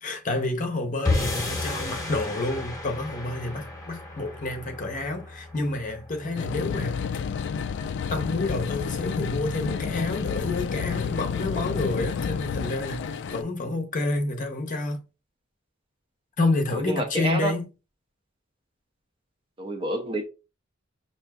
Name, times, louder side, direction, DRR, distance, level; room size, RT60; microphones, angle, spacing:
voice 1, 0.0-7.1 8.1-15.1 16.4-17.7, left 2 dB, 40° left, 0.7 m, -29 dB
sound 1, 1.0-7.4, left 2 dB, 15° left, 1.0 m, -32 dB
sound 2, 6.4-13.4, left 6 dB, 60° left, 0.3 m, -30 dB
voice 2, 16.7-17.5 19.6-20.3, right 1 dB, 25° right, 0.6 m, -28 dB
5.7 x 2.6 x 2.3 m
head